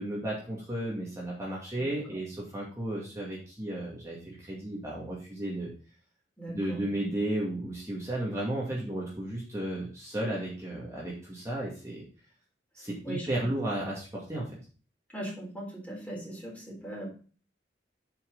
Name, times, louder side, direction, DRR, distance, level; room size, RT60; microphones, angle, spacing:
voice 1, 0.0-5.7 6.5-12.0 12.7-14.6, right 1 dB, 15° right, -5 dB, 2.2 m, -34 dB
voice 2, 6.4-6.8 13.0-13.5 15.1-17.1, right 1 dB, 10° left, -2 dB, 3.7 m, -39 dB
8.5 x 6.0 x 4.0 m, 0.39 s
head